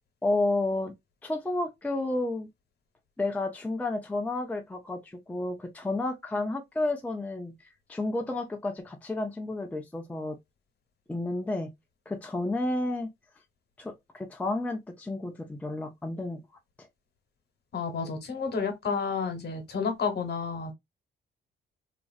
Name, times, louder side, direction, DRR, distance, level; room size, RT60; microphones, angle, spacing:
voice 1, 0.2-0.9 1.2-2.5 3.2-10.4 11.1-11.7 12.1-13.1 13.8-16.4 16.8-16.9, left 2 dB, 5° left, 0.5 m, -31 dB
voice 2, 17.7-20.7, left 5 dB, 55° left, 1.1 m, -30 dB
2.9 x 2.5 x 2.4 m
cardioid pair, 90°, 20 cm